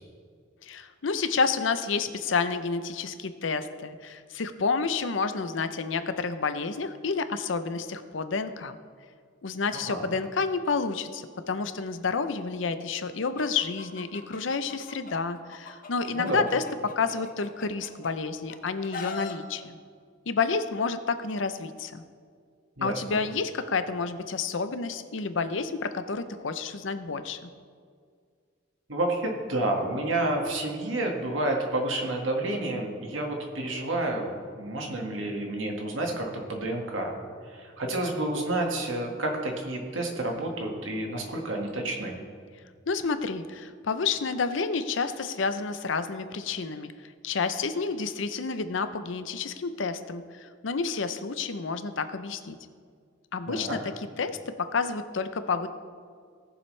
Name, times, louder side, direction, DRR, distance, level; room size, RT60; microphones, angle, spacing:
voice 1, 0.6-8.8 9.4-19.8 20.3-22.0 22.8-27.5 42.9-46.9 47.2-52.6 53.3-53.8 54.2-55.7, left 4 dB, 75° left, 10 dB, 0.7 m, -30 dB
voice 2, 9.7-10.1 16.1-16.4 22.8-23.2 28.9-37.1 37.5-42.2 53.5-53.8, right 1 dB, 85° right, 1 dB, 1.9 m, -30 dB
Chicken rooster, 13.4-15.1 15.5-18.1 18.5-19.3, left 3 dB, 45° left, 1.0 m, -40 dB
18.5 x 7.1 x 3.3 m, 2.1 s
head